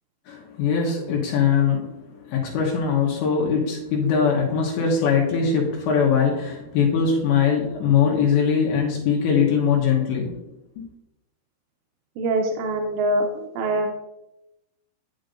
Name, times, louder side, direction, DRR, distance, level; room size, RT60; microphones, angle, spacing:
voice 1, 0.3-1.9 2.2-10.4 10.8-10.9, left 6 dB, 75° left, -1 dB, 3.0 m, -21 dB
voice 2, 12.2-13.9, right 2 dB, 85° right, 2 dB, 2.6 m, -24 dB
9.2 x 7.8 x 2.6 m, 0.93 s
omnidirectional pair, 5.8 m